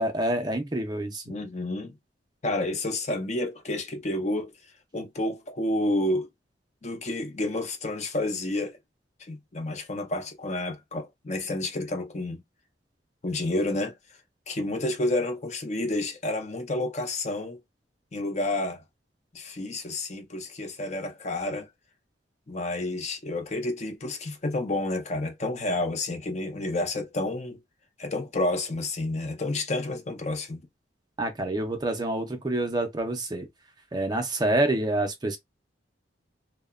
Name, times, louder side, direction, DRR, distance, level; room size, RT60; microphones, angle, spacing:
voice 1, 0.0-1.2 31.2-33.5 33.9-35.4, right 1 dB, 25° right, 0.5 m, -27 dB
voice 2, 1.3-1.9 2.4-4.5 4.9-6.3 6.8-8.8 9.3-12.4 13.2-13.9 14.5-17.6 18.1-18.8 19.3-21.7 22.5-27.6 28.0-30.6, left 2 dB, 40° left, 0.6 m, -30 dB
2.8 x 2.1 x 2.3 m
head